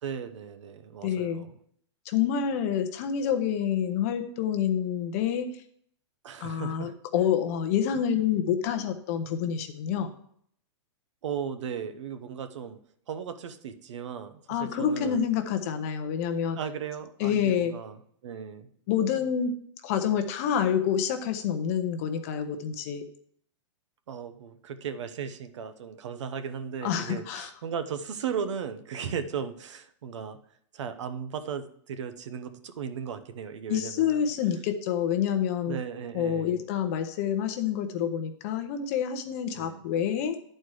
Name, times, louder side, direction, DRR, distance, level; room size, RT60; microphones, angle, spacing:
voice 1, 0.0-1.5 6.2-6.9 11.2-12.8 13.1-15.3 16.6-18.7 24.1-30.4 30.7-34.3 35.7-36.6 39.5-39.8, right 7 dB, 85° right, 10 dB, 0.9 m, -36 dB
voice 2, 1.0-1.5 2.1-5.5 6.4-10.1 14.5-16.6 17.2-17.7 18.9-19.5 19.8-23.0 26.8-27.5 33.7-35.8 36.1-40.4, left 8 dB, 30° left, 7 dB, 0.7 m, -27 dB
10.0 x 4.4 x 4.7 m, 0.65 s
supercardioid pair, 175°, 15 cm